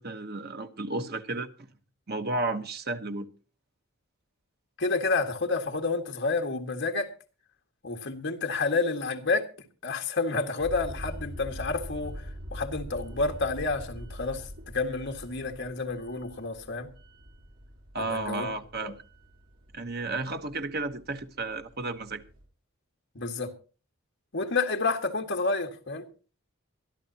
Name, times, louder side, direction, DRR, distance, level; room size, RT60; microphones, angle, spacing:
voice 1, 0.0-1.5 2.1-3.3 17.9-19.0 19.7-22.2, right 2 dB, 45° right, 1.0 m, -33 dB
voice 2, 4.8-7.1 7.8-9.5 9.8-12.2 12.5-16.9 18.0-18.5 18.8-18.9 23.1-23.5 24.3-26.0, left 3 dB, 55° left, 1.8 m, -29 dB
sound 1, 10.6-22.4, equal, 70° right, 3.1 m, -43 dB
23.0 x 13.0 x 2.8 m
head